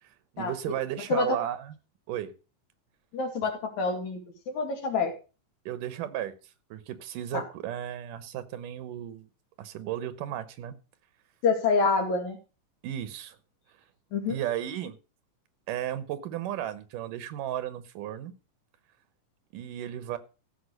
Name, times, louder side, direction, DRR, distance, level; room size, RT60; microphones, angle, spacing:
voice 1, 0.3-1.8 2.1-2.3 5.7-6.3 6.7-9.3 9.6-10.8 12.8-13.4 14.3-15.0 15.7-18.3 19.5-20.2, right 11 dB, 85° right, 14 dB, 2.7 m, -34 dB
voice 2, 3.1-4.2 4.5-5.1 7.3-7.4 11.4-12.4 14.1-14.4, left 4 dB, 65° left, 4 dB, 3.5 m, -26 dB
15.0 x 5.7 x 6.5 m, 0.33 s
omnidirectional pair, 3.6 m